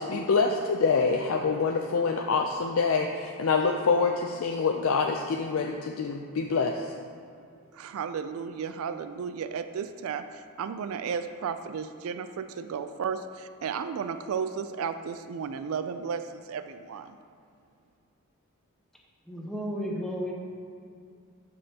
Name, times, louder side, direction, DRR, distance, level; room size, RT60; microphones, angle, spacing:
voice 1, 0.0-6.9, left 4 dB, 70° left, 2 dB, 0.4 m, -26 dB
voice 2, 7.8-10.2 10.6-17.1, right 6 dB, 75° right, 10 dB, 0.3 m, -33 dB
voice 3, 19.3-20.3, equal, ahead, -2 dB, 0.8 m, -33 dB
12.5 x 5.3 x 2.8 m, 2.4 s
head